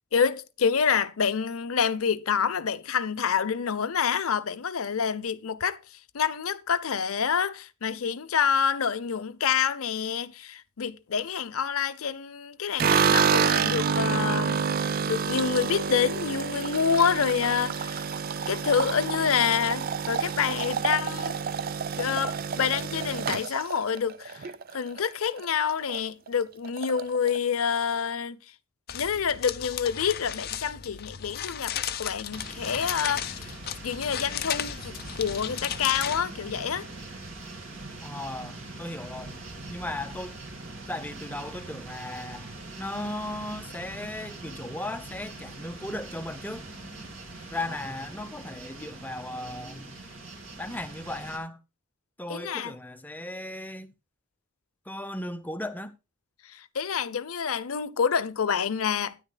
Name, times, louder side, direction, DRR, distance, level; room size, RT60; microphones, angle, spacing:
voice 1, 0.1-18.0 18.5-21.3 22.0-28.4 28.9-33.5 33.8-36.9 52.3-52.7 56.4-59.2, left 7 dB, 90° left, 0.7 m, -27 dB
sound 1, 12.8-25.0 25.4-26.0 26.3-26.4 26.6-27.4, right 6 dB, 45° right, 0.4 m, -28 dB
sound 2, 28.9-36.2, left 10 dB, 45° left, 0.6 m, -35 dB
sound 3, 32.3-51.4, right 2 dB, 60° right, 2.6 m, -42 dB
voice 2, 38.0-39.4 39.7-40.3 40.9-42.5 42.8-46.6 47.5-50.0 50.6-51.6 52.2-53.9 54.9-55.9, left 1 dB, 10° left, 0.7 m, -36 dB
12.5 x 10.0 x 2.3 m
head